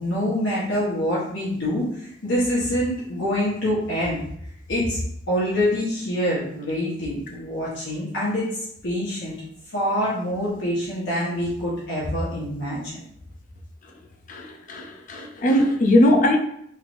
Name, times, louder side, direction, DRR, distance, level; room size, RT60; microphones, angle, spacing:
voice 1, 0.0-4.2 4.7-5.0 5.3-8.5 8.8-9.3 9.7-12.9, equal, 75° left, -9 dB, 1.0 m, -25 dB
voice 2, 14.3-16.4, left 1 dB, 45° left, 3 dB, 0.4 m, -20 dB
3.4 x 3.1 x 2.5 m, 0.70 s
head